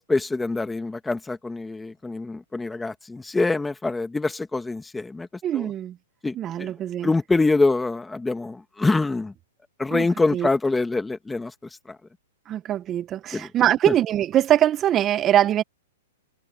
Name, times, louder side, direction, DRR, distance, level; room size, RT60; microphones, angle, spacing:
voice 1, 0.0-5.3 5.5-5.7 6.2-6.7 7.0-9.3 9.8-11.5 11.9-12.0 13.3-13.5, left 3 dB, 5° left, 1.9 m, -25 dB
voice 2, 5.4-6.0 6.3-7.1 9.9-10.1 10.3-10.5 12.5-15.6, right 11 dB, 25° right, 1.0 m, -22 dB
hypercardioid pair, 135°, 0 cm